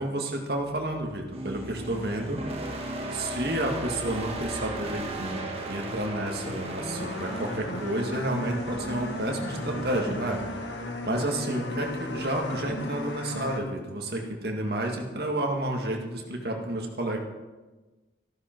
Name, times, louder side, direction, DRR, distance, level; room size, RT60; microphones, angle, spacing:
voice 1, 0.0-2.4 3.1-10.4 10.7-17.2, right 1 dB, 60° right, 2 dB, 2.0 m, -31 dB
sound 1, 0.6-13.6, left 1 dB, 85° left, 1.5 m, -37 dB
sound 2, 1.3-11.6, right 2 dB, 35° right, 1.7 m, -37 dB
14.0 x 13.0 x 4.6 m, 1.2 s
head